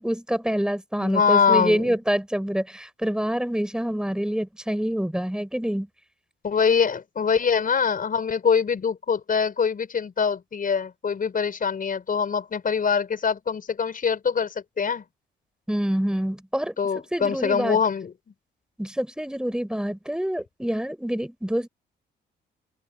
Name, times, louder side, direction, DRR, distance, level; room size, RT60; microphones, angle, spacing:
voice 1, 0.0-5.9 15.7-16.8 17.1-17.8 18.8-21.7, equal, 5° right, 7.2 m, -26 dB
voice 2, 1.0-1.9 6.4-15.0 16.8-18.1, left 6 dB, 45° left, 6.4 m, -23 dB
cardioid pair, 90°, 20 cm